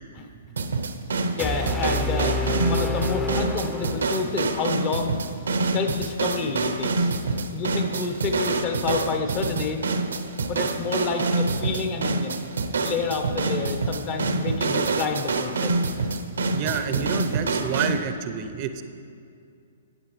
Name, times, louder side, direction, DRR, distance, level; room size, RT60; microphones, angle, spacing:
sound 1, 0.6-18.0, right 3 dB, 80° right, 0.7 m, -26 dB
voice 1, 1.4-2.4 2.7-5.2 5.7-7.1 7.5-9.9 10.5-12.4 12.8-15.7 16.7-17.2, left 4 dB, 35° left, 5 dB, 1.1 m, -29 dB
sound 2, 1.4-4.5, left 2 dB, 10° left, 0.7 m, -28 dB
voice 2, 16.5-18.8, right 7 dB, 40° right, 10 dB, 0.6 m, -28 dB
18.5 x 8.0 x 3.2 m, 2.3 s
hypercardioid pair, 130°, 0 cm